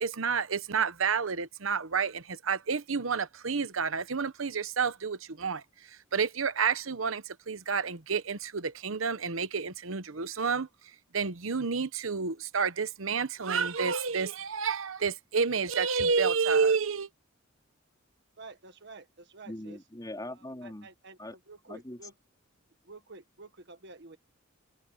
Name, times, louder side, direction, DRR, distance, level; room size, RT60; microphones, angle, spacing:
voice 1, 0.0-10.7 11.1-17.1, right 5 dB, 75° right, 1.0 m, -30 dB
voice 2, 18.4-19.8 20.3-22.1 22.8-24.2, right 3 dB, 55° right, 1.6 m, -50 dB
voice 3, 19.5-20.9 21.2-21.4 21.7-22.0, left 1 dB, 20° left, 3.0 m, -41 dB
head